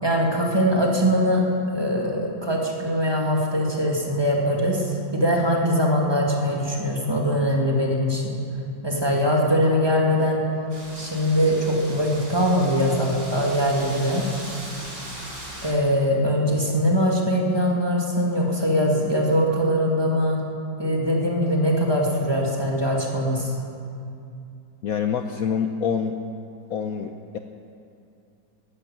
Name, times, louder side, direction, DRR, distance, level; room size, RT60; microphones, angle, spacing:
voice 1, 0.0-1.4 1.7-8.3 8.8-10.4 10.9-14.2 15.6-20.4 20.8-23.5, equal, 15° right, -1 dB, 2.0 m, -22 dB
Wind, 10.7-15.7, right 1 dB, 40° right, 5.0 m, -39 dB
voice 2, 24.8-26.2 26.7-27.4, left 7 dB, 65° left, 6 dB, 0.9 m, -26 dB
17.0 x 12.0 x 7.0 m, 2.6 s
omnidirectional pair, 2.1 m